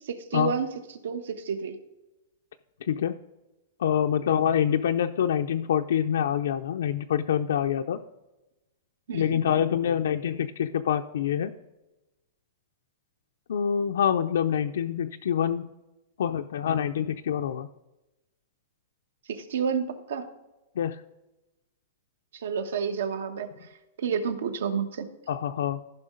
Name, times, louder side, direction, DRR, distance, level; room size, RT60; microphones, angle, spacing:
voice 1, 0.1-0.7 1.0-1.8 9.1-9.4 19.3-20.2 22.4-23.5 24.0-25.1, right 6 dB, 75° right, 8 dB, 1.2 m, -30 dB
voice 2, 3.8-8.0 9.1-11.5 13.5-15.7 16.2-17.7 20.8-21.0 25.3-25.8, left 9 dB, 75° left, 5 dB, 0.4 m, -26 dB
15.0 x 5.7 x 3.8 m, 1.0 s
supercardioid pair, 180°, 0 cm